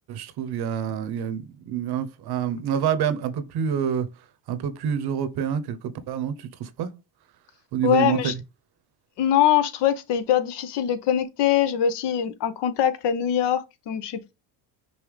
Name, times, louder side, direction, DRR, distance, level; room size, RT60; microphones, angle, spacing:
voice 1, 0.1-4.1 4.5-6.9 7.7-8.3, right 8 dB, 55° right, 0.9 m, -27 dB
voice 2, 7.8-8.3 9.2-14.3, left 10 dB, 60° left, 0.9 m, -23 dB
5.5 x 2.7 x 3.3 m
supercardioid pair, 90°, 47 cm